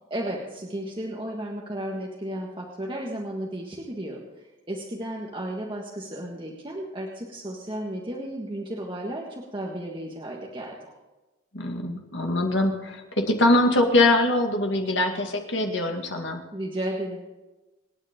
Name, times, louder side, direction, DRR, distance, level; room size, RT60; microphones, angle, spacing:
voice 1, 0.1-10.9 16.5-17.2, right 1 dB, 25° right, -2 dB, 1.7 m, -34 dB
voice 2, 11.5-13.0 13.3-16.4, left 2 dB, 55° left, 2 dB, 2.1 m, -23 dB
27.5 x 9.8 x 3.7 m, 1.1 s
head